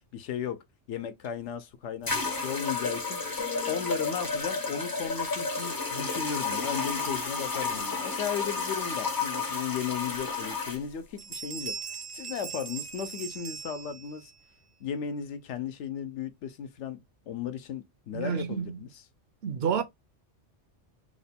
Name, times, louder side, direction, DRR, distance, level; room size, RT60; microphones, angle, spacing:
voice 1, 0.1-0.6 0.9-3.2 3.7-11.8 12.1-14.3 14.8-19.0, left 7 dB, 75° left, 0.9 m, -35 dB
sound 1, 1.2-1.3 2.1-10.8, left 4 dB, 25° left, 0.5 m, -32 dB
sound 2, 3.4-7.4 7.7-8.1, left 11 dB, 55° left, 1.0 m, -47 dB
sound 3, 10.1-10.2 10.7-10.9 11.2-14.3, right 6 dB, 40° right, 0.5 m, -40 dB
voice 2, 18.1-18.8 19.4-19.8, right 7 dB, 65° right, 0.8 m, -29 dB
3.0 x 2.2 x 4.1 m
omnidirectional pair, 1.2 m